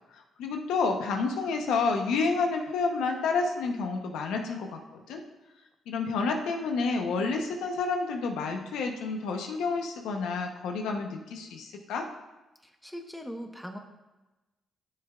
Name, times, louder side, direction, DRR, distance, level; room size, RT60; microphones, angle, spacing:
voice 1, 0.1-5.2 5.9-12.1, left 4 dB, 80° left, 3 dB, 0.9 m, -29 dB
voice 2, 12.6-13.8, equal, ahead, 4 dB, 1.0 m, -40 dB
12.0 x 6.6 x 2.4 m, 1.1 s
supercardioid pair, 60°, 0 cm